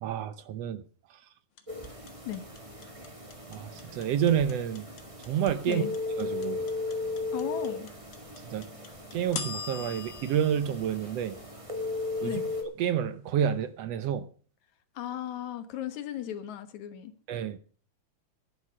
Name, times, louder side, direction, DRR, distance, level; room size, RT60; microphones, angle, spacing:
voice 1, 0.0-0.8 3.5-4.8 5.3-5.8 6.1-6.6 8.5-8.7 9.1-11.4 12.2-12.3 12.8-14.3 17.3-17.6, right 9 dB, 70° right, 13 dB, 1.7 m, -29 dB
sound 1, 1.6-11.7, left 6 dB, 45° left, 1.8 m, -42 dB
sound 2, 1.7-12.6, left 3 dB, 10° right, 2.0 m, -37 dB
voice 2, 7.3-7.9 12.2-12.5 14.9-17.1, left 11 dB, 75° left, 11 dB, 2.6 m, -36 dB
11.5 x 11.5 x 6.3 m, 0.40 s
omnidirectional pair, 3.3 m